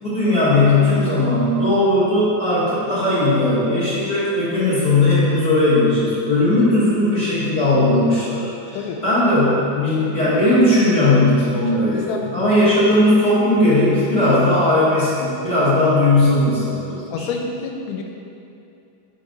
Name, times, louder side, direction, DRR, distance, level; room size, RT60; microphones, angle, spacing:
voice 1, 0.0-12.0 12.3-17.3, left 1 dB, 55° left, -13 dB, 1.1 m, -17 dB
voice 2, 11.9-12.5 14.2-14.4 17.1-18.0, left 5 dB, 85° left, 2 dB, 2.1 m, -27 dB
4.9 x 3.8 x 5.1 m, 2.7 s
omnidirectional pair, 3.7 m